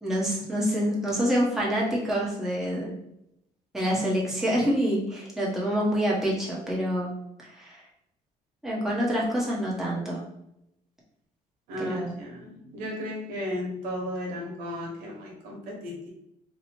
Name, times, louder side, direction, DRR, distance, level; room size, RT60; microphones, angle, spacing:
voice 1, 0.0-2.9 3.7-7.1 7.4-7.8 8.6-10.2 11.8-12.1, equal, 5° right, -5 dB, 1.0 m, -27 dB
voice 2, 11.7-16.1, left 1 dB, 90° right, -1 dB, 1.2 m, -34 dB
3.1 x 2.3 x 4.2 m, 0.80 s
cardioid pair, 140°, 15 cm